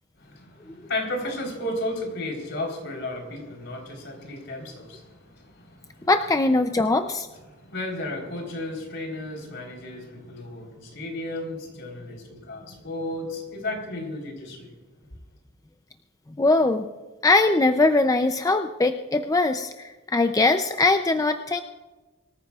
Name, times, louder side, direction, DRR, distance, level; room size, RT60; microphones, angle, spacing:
voice 1, 0.2-6.1 7.0-7.1 7.5-14.7, left 1 dB, 60° left, 1 dB, 3.8 m, -34 dB
voice 2, 6.1-7.3 16.4-16.9 17.2-21.6, left 2 dB, 15° left, 7 dB, 0.4 m, -21 dB
24.0 x 14.0 x 2.4 m, 1.2 s
head